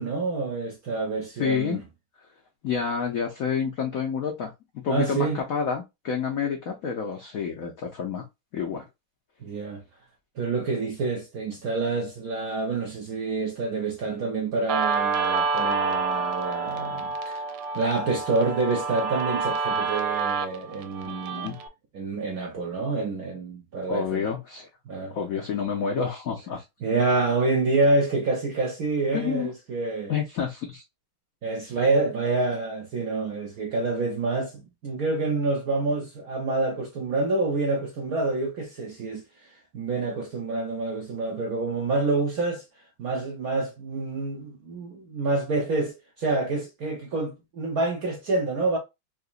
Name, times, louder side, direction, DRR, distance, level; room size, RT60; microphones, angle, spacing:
voice 1, 0.0-1.8 4.9-5.4 9.4-9.8 10.4-17.4 17.7-21.6 21.9-24.3 24.9-25.2 26.8-30.1 31.4-42.7 43.0-48.8, right 3 dB, 65° right, 0.9 m, -27 dB
voice 2, 1.4-1.8 2.6-4.5 4.8-8.2 8.5-8.9 21.0-21.6 23.9-24.7 25.1-26.6 29.1-29.5 30.1-30.8, left 6 dB, 80° left, 0.7 m, -29 dB
Guitar, 14.7-21.7, right 5 dB, 85° right, 1.5 m, -28 dB
3.9 x 2.9 x 2.3 m
omnidirectional pair, 2.3 m